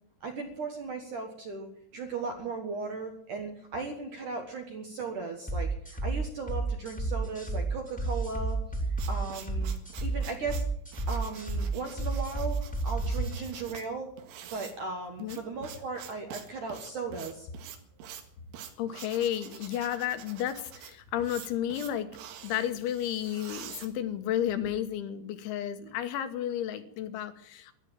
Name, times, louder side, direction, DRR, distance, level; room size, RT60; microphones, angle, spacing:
voice 1, 0.2-8.6 9.1-9.7 10.0-10.7 11.1-14.1 14.5-17.5 25.8-25.9, right 4 dB, 65° right, 3 dB, 2.1 m, -37 dB
sound 1, 5.5-13.5, right 3 dB, 5° left, 1.3 m, -31 dB
sound 2, 8.6-24.5, right 9 dB, 85° right, 4.4 m, -47 dB
voice 2, 18.8-22.1 22.4-27.7, left 11 dB, 75° left, 10 dB, 3.4 m, -32 dB
14.0 x 11.5 x 8.8 m, 0.68 s
omnidirectional pair, 5.8 m